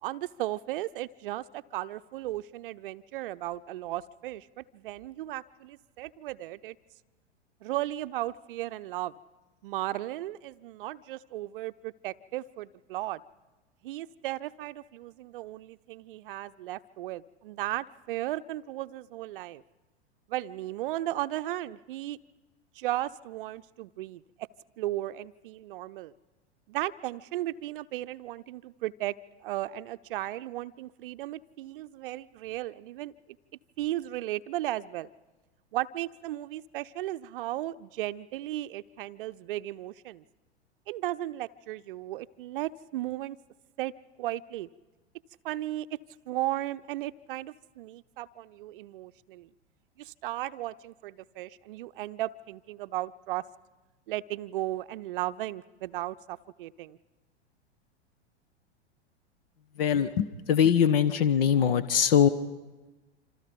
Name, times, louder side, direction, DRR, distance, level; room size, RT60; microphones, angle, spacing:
voice 1, 0.0-6.8 7.6-9.1 9.6-13.2 13.8-19.6 20.3-22.2 22.7-24.5 24.8-26.1 26.7-29.1 29.4-33.1 33.8-35.1 35.7-40.2 40.9-43.4 43.8-43.9 44.2-44.7 45.4-46.0 46.3-49.5 50.0-53.4 54.1-57.0, right 15 dB, 50° right, 11 dB, 0.7 m, -35 dB
voice 2, 59.8-62.3, left 8 dB, 55° left, 13 dB, 1.3 m, -22 dB
27.0 x 26.5 x 5.3 m, 1.2 s
figure-of-eight pair, 95°, 34 cm